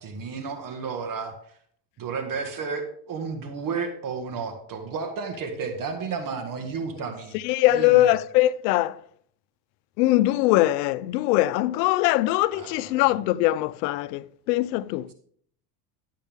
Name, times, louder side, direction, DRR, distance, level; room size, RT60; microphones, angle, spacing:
voice 1, 0.0-1.3 2.0-7.4 7.7-8.1 12.5-12.8, right 5 dB, 40° right, 1.7 m, -32 dB
voice 2, 7.3-9.0 10.0-15.1, left 16 dB, 85° left, 0.7 m, -22 dB
12.0 x 8.3 x 3.6 m
supercardioid pair, 115°, 48 cm